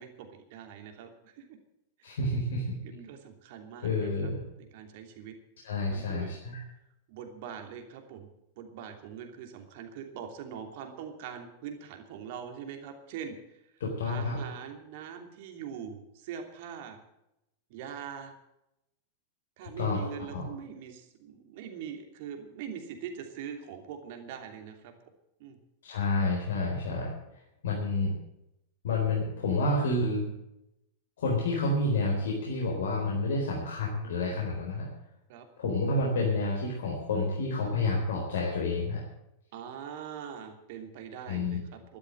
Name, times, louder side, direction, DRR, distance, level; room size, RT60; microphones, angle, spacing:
voice 1, 0.0-1.6 2.8-4.3 4.6-5.4 5.9-6.3 7.1-8.3 8.6-13.4 14.1-17.0 17.7-18.3 19.6-24.9 25.4-25.6 35.3-35.4 39.5-42.0, right 8 dB, 50° right, 5 dB, 2.9 m, -42 dB
voice 2, 2.0-2.6 3.8-4.4 5.6-6.6 13.8-14.4 19.8-20.5 25.8-27.1 27.6-28.1 28.8-30.2 31.2-34.9 35.6-39.0 41.3-41.6, left 2 dB, 60° left, -3 dB, 4.2 m, -29 dB
12.5 x 12.5 x 7.8 m, 0.84 s
figure-of-eight pair, 90°, 0 cm